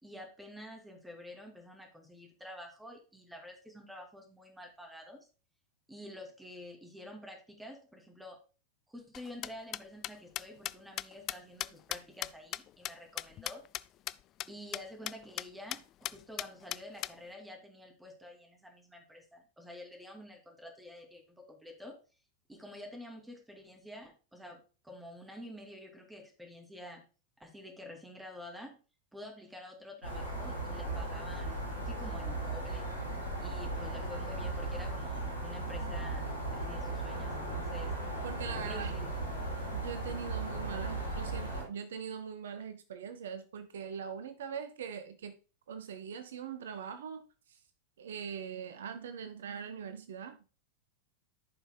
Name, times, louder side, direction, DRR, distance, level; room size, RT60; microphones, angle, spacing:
voice 1, 0.0-5.2 5.9-8.4 8.9-13.6 14.5-22.0 22.5-27.0 27.4-28.8 29.1-32.9 33.4-37.9 38.6-39.2, left 1 dB, 5° right, 3 dB, 2.5 m, -49 dB
sound 1, 9.1-13.8 14.1-14.2 14.4-14.5 14.7-14.8 15.1-15.4 15.7-15.8 16.0-17.1, left 14 dB, 35° left, 0.3 m, -37 dB
sound 2, 30.0-41.6, right 2 dB, 90° right, 4.8 m, -37 dB
voice 2, 38.2-38.9 39.7-45.4 45.7-47.6 48.0-50.4, right 7 dB, 60° right, 11 dB, 0.8 m, -42 dB
14.0 x 5.6 x 2.2 m, 0.34 s
figure-of-eight pair, 90°, 0 cm